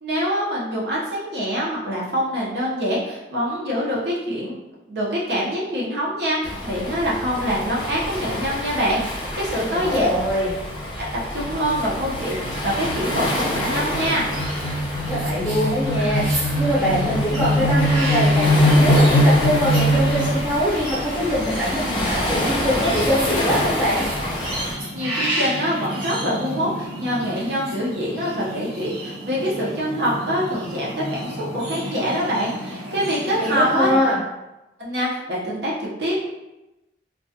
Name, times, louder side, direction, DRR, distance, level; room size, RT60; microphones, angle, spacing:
voice 1, 0.0-4.6 4.9-10.1 11.3-14.3 24.9-33.9 34.8-36.1, equal, 70° right, -5 dB, 0.7 m, -25 dB
Waves surf, 6.4-24.7, left 1 dB, 30° left, 0.6 m, -28 dB
voice 2, 9.7-10.5 14.9-24.0 33.4-34.2, equal, 10° right, -9 dB, 0.7 m, -23 dB
sound 1, 10.9-20.6, equal, 80° left, 0.3 m, -21 dB
sound 2, 14.2-34.0, right 1 dB, 85° right, 1.1 m, -32 dB
2.3 x 2.2 x 2.6 m, 0.97 s
head